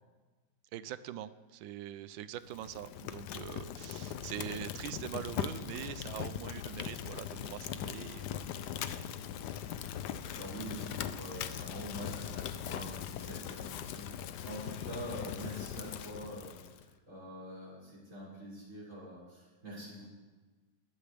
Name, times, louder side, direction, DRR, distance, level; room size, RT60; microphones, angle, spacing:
voice 1, 0.7-9.1, right 11 dB, 80° right, 14 dB, 1.4 m, -43 dB
Fire, 2.4-16.8, left 10 dB, 70° left, 1.1 m, -40 dB
voice 2, 9.8-20.1, equal, 40° right, -6 dB, 6.7 m, -45 dB
20.5 x 14.5 x 3.5 m, 1.3 s
omnidirectional pair, 2.1 m